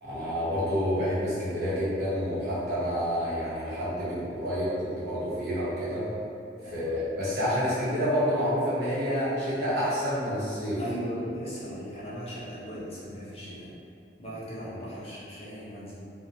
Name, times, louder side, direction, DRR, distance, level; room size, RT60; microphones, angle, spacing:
voice 1, 0.0-6.0 6.7-10.8, equal, 65° right, -11 dB, 1.0 m, -28 dB
voice 2, 6.6-6.9 10.8-13.7 14.2-15.9, equal, 35° left, -9 dB, 0.6 m, -38 dB
2.9 x 2.1 x 2.6 m, 2.5 s
head